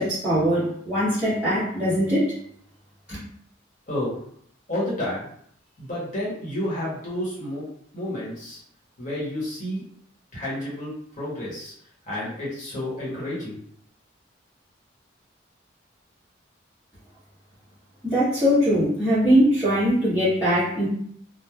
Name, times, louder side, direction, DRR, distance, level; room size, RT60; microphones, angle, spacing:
voice 1, 0.0-2.3 3.1-3.2 18.0-20.9, equal, 5° right, -16 dB, 1.1 m, -21 dB
voice 2, 3.9-4.2 4.7-5.3 5.8-7.7 7.9-8.6 9.0-9.8 10.3-11.7 12.1-13.6, left 1 dB, 40° left, -7 dB, 1.0 m, -30 dB
3.0 x 2.0 x 2.3 m, 0.65 s
head